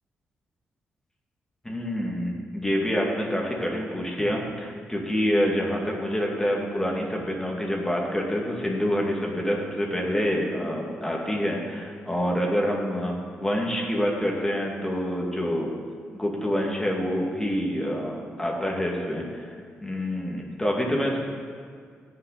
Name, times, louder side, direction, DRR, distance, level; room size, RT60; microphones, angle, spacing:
voice 1, 1.6-15.7 16.1-19.5 19.8-21.2, equal, 10° left, -1 dB, 2.2 m, -27 dB
17.0 x 5.8 x 4.2 m, 2.1 s
cardioid pair, 85°, 4 cm